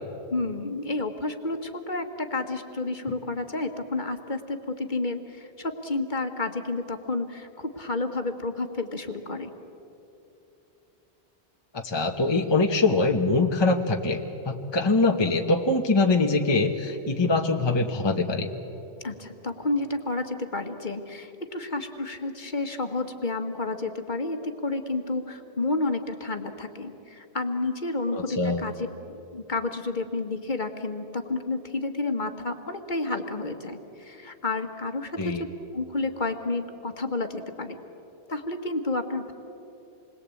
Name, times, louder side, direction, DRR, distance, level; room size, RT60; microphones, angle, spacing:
voice 1, 0.3-9.5 19.0-35.5 35.7-37.8 38.3-39.3, left 2 dB, 45° left, 6 dB, 1.6 m, -30 dB
voice 2, 11.7-18.5 28.1-28.6 35.2-35.4, left 3 dB, 25° left, 3 dB, 1.1 m, -23 dB
27.5 x 21.0 x 8.4 m, 2.9 s
omnidirectional pair, 1.1 m